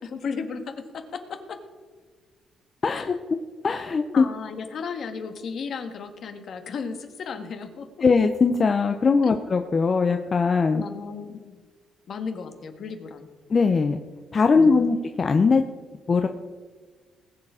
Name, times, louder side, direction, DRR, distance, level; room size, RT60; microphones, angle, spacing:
voice 1, 0.0-1.6 2.9-3.1 4.1-7.9 9.2-9.3 10.7-11.6 12.1-13.3 14.5-14.9, left 5 dB, 60° left, 6 dB, 1.7 m, -35 dB
voice 2, 2.8-3.1 3.6-4.2 8.0-10.8 13.5-14.0 14.3-15.6 16.1-16.3, left 4 dB, 40° left, 6 dB, 0.8 m, -20 dB
19.5 x 7.4 x 5.0 m, 1.5 s
cardioid pair, 90°, 0 cm